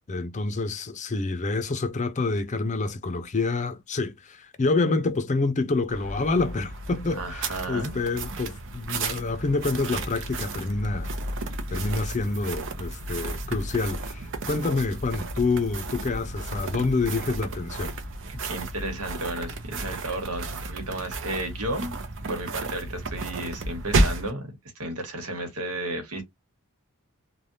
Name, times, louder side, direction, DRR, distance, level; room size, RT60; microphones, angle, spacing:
voice 1, 0.1-11.1 11.7-18.0, left 3 dB, 35° left, 0.5 m, -27 dB
sound 1, 5.9-24.3, right 2 dB, 60° right, 0.7 m, -32 dB
voice 2, 7.1-8.0 18.3-21.9 22.3-26.2, right 1 dB, 80° right, 1.3 m, -33 dB
3.3 x 2.2 x 2.6 m
head